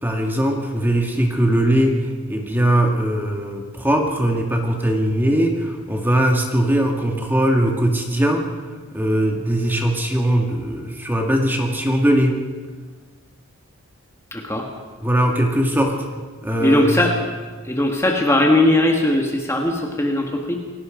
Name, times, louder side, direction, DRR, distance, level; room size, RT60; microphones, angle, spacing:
voice 1, 0.0-8.5 8.9-12.4 15.0-16.0 16.4-16.9, right 1 dB, 10° right, 2 dB, 2.0 m, -20 dB
voice 2, 14.3-14.7 16.6-17.2 17.6-20.6, left 1 dB, 10° left, 1 dB, 1.9 m, -19 dB
28.0 x 17.5 x 5.2 m, 1.4 s
head